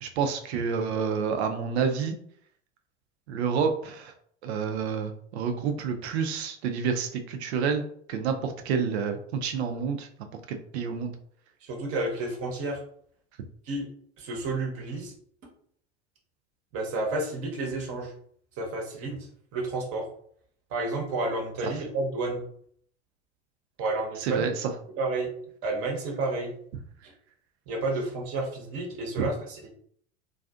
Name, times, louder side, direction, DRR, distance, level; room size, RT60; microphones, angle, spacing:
voice 1, 0.0-2.2 3.3-4.1 4.4-7.8 8.1-10.1 10.5-11.1 24.2-24.7, right 6 dB, 65° right, 6 dB, 0.5 m, -29 dB
voice 2, 11.6-12.8 13.7-13.8 14.2-15.1 16.7-18.1 18.6-19.3 19.5-20.0 20.7-22.4 23.8-24.5 25.0-25.3 25.6-26.5 27.7-29.7, right 2 dB, 40° right, 0 dB, 0.9 m, -30 dB
2.5 x 2.3 x 2.3 m, 0.63 s
figure-of-eight pair, 80°, 36 cm